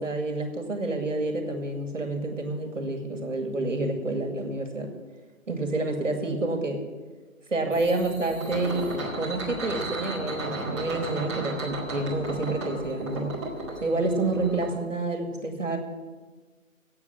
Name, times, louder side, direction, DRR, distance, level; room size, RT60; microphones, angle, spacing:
voice 1, 0.0-4.9 5.5-6.8 7.5-13.4 13.8-15.8, right 2 dB, 60° right, 4 dB, 2.3 m, -28 dB
sound 1, 7.7-14.7, right 2 dB, 20° right, 2.2 m, -35 dB
12.0 x 8.3 x 9.3 m, 1.4 s
figure-of-eight pair, 160°, 42 cm